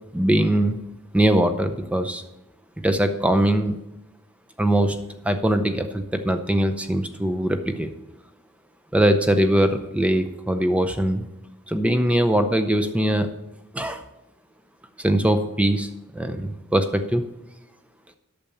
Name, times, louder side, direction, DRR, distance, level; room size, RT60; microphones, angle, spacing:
voice 1, 0.1-0.8 1.1-2.2 2.8-3.7 4.6-5.0 5.2-7.9 8.9-11.2 11.7-13.3 13.7-14.0 15.0-17.3, right 1 dB, 5° right, 8 dB, 0.5 m, -21 dB
8.6 x 6.7 x 7.0 m, 0.90 s
head